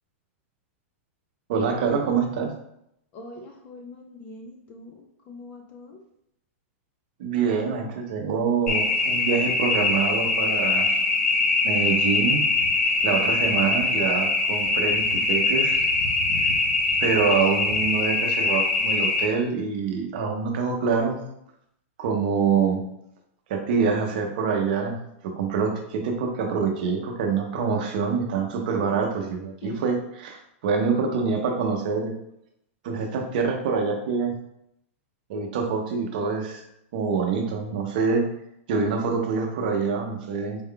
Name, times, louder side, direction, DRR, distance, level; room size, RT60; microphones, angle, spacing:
voice 1, 1.5-2.5 7.2-10.9 11.6-12.5 13.0-15.8 16.4-16.5 17.0-21.2 22.0-22.8 23.5-25.0 25.2-32.1 32.8-34.4 35.3-36.6 36.9-38.3 38.7-40.6, right 5 dB, 40° right, 2 dB, 0.7 m, -25 dB
voice 2, 3.1-6.0 28.0-28.2 29.6-29.9, left 2 dB, 20° left, 3 dB, 0.4 m, -44 dB
sound 1, 8.7-19.3, left 3 dB, 85° left, 1.0 m, -23 dB
4.3 x 2.3 x 3.7 m, 0.77 s
supercardioid pair, 180°, 7 cm